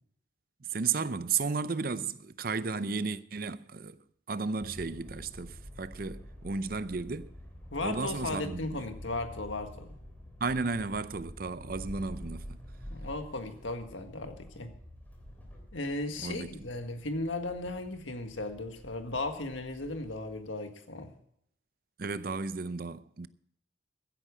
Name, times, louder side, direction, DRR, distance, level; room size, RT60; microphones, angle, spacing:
voice 1, 0.6-4.0 4.3-7.3 7.8-8.8 10.4-12.6 16.2-16.5 22.0-23.3, right 4 dB, 50° right, 0.6 m, -34 dB
sound 1, 4.6-20.5, equal, 10° left, 3.1 m, -48 dB
voice 2, 7.7-10.0 12.9-14.7 15.7-21.1, left 2 dB, 85° left, 1.7 m, -36 dB
15.5 x 10.0 x 4.9 m
head